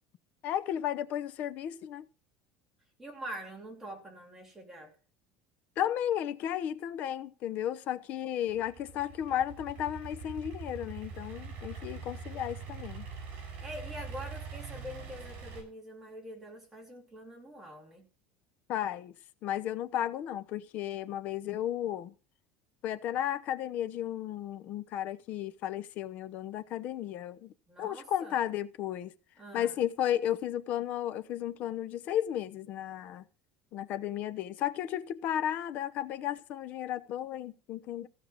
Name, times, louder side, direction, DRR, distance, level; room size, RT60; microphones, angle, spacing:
voice 1, 0.4-2.1 5.8-13.1 18.7-19.1 19.4-22.1 22.8-27.5 27.8-29.1 29.5-33.2 33.7-38.1, left 11 dB, 40° left, 0.8 m, -34 dB
voice 2, 3.0-4.9 13.6-18.1 27.7-28.4 29.4-29.8, equal, 10° right, 3.1 m, -45 dB
Idling / Accelerating revving vroom, 8.5-15.6, right 5 dB, 40° right, 6.8 m, -43 dB
15.5 x 6.5 x 7.3 m
cardioid pair, 175°, 4 cm